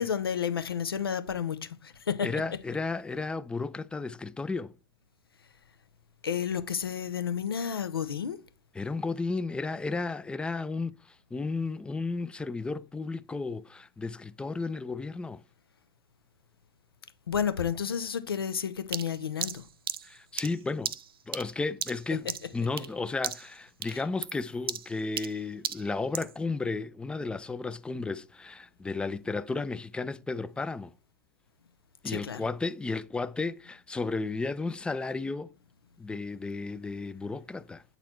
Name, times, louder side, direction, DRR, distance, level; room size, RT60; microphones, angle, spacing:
voice 1, 0.0-2.6 6.2-8.4 17.3-19.7 22.2-22.3 23.9-24.0 32.0-32.5, left 7 dB, 90° left, 0.6 m, -31 dB
voice 2, 2.2-4.7 8.8-15.4 20.0-20.9 21.3-22.3 22.5-30.9 32.0-35.5 36.0-37.8, left 3 dB, 10° left, 0.3 m, -33 dB
sound 1, 18.9-23.0 23.2-23.6 23.8-26.4, right 9 dB, 85° right, 0.4 m, -36 dB
8.1 x 4.1 x 4.3 m
hypercardioid pair, 100°, 12 cm